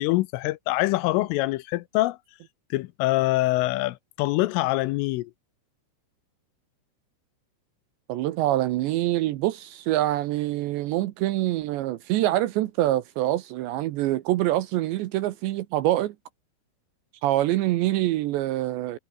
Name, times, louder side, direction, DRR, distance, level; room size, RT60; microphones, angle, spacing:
voice 1, 0.0-2.2 2.7-5.3, left 19 dB, 85° left, 3.2 m, -24 dB
voice 2, 8.1-16.2 17.2-19.0, right 15 dB, 75° right, 2.8 m, -25 dB
omnidirectional pair, 6.0 m